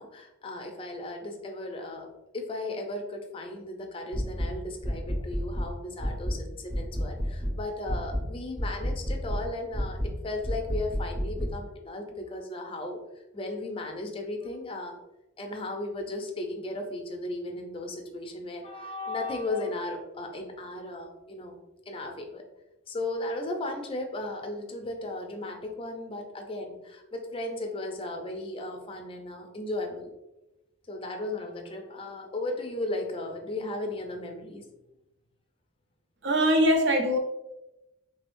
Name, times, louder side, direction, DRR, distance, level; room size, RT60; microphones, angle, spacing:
voice 1, 0.0-13.0 13.3-15.0 15.4-21.6 21.9-22.4 22.9-30.1 30.9-34.7, left 2 dB, 25° left, 3 dB, 0.5 m, -36 dB
sound 1, 4.1-4.5 4.8-5.7 6.0-6.4 6.7-7.6 7.9-8.3 8.6-9.4 9.7-10.1 10.4-11.5, equal, 25° right, 0.9 m, -30 dB
voice 2, 36.2-37.2, equal, 60° right, 3 dB, 0.6 m, -22 dB
3.5 x 3.4 x 2.5 m, 0.95 s
head